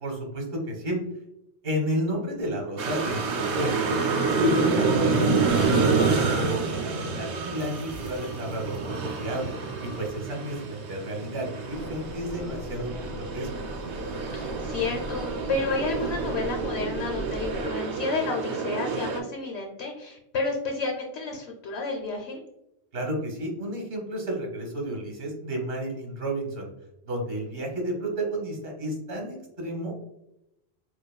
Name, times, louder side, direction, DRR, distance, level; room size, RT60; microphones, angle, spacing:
voice 1, 0.0-1.0 1.6-4.0 4.3-9.5 9.8-12.9 13.3-13.5 22.9-26.7 27.0-30.0, equal, 60° right, 0 dB, 1.4 m, -31 dB
sound 1, 2.8-19.2, right 4 dB, 85° right, 0.9 m, -28 dB
sound 2, 11.7-17.6, equal, 40° right, 1.5 m, -38 dB
voice 2, 14.3-22.4, left 3 dB, 75° left, 1 dB, 0.9 m, -31 dB
4.7 x 2.3 x 2.2 m, 0.86 s
omnidirectional pair, 1.1 m